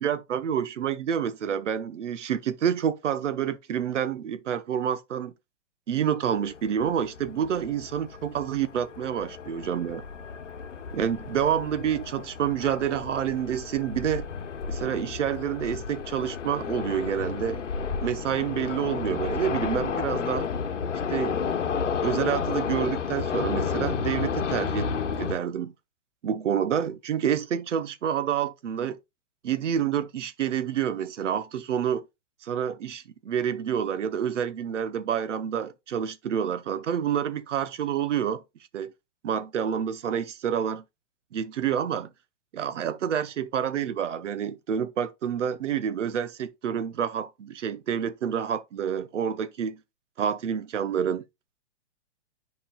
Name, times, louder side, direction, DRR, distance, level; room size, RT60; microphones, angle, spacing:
voice 1, 0.0-5.3 5.9-10.0 10.9-14.3 14.7-17.6 18.0-20.5 21.1-24.9 25.2-25.7 26.2-29.0 29.4-32.0 32.4-38.4 38.7-38.9 39.2-40.8 41.3-42.1 42.5-49.8 50.2-51.2, right 9 dB, 85° right, 0.8 m, -28 dB
sound 1, 6.3-25.3, left 6 dB, 90° left, 1.0 m, -32 dB
8.9 x 5.3 x 2.3 m
hypercardioid pair, 130°, 35 cm